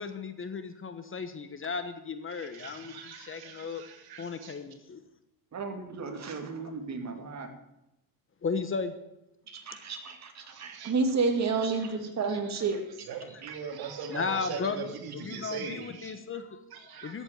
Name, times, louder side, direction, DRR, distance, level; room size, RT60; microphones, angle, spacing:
voice 1, 0.0-3.8 4.2-5.0 8.4-8.9 14.1-14.8 15.1-17.2, left 5 dB, 30° left, 10 dB, 1.2 m, -35 dB
voice 2, 2.3-4.6 10.5-10.9 11.7-16.2 16.7-17.2, right 6 dB, 55° right, 5 dB, 2.8 m, -42 dB
voice 3, 5.5-7.5 9.5-12.8 13.4-13.5, right 4 dB, 40° right, 5 dB, 2.6 m, -31 dB
14.0 x 8.0 x 9.2 m, 0.89 s
cardioid pair, 120°, 43 cm